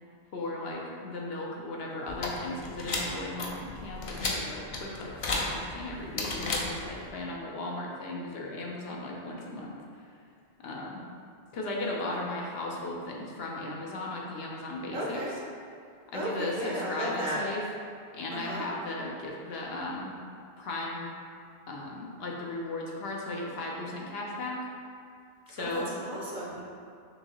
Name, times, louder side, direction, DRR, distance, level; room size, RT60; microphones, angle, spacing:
voice 1, 0.3-9.8 10.6-11.0 11.5-15.2 16.1-17.6 18.1-20.2 20.6-21.1 21.7-24.6 25.5-26.0, left 2 dB, 75° left, -2 dB, 0.9 m, -36 dB
sound 1, 2.1-7.1, left 2 dB, 50° left, 0.4 m, -34 dB
voice 2, 14.9-15.4 16.1-17.4 18.3-18.7 25.6-26.6, right 1 dB, 60° right, -5 dB, 0.8 m, -34 dB
5.7 x 2.7 x 2.9 m, 2.3 s
omnidirectional pair, 1.0 m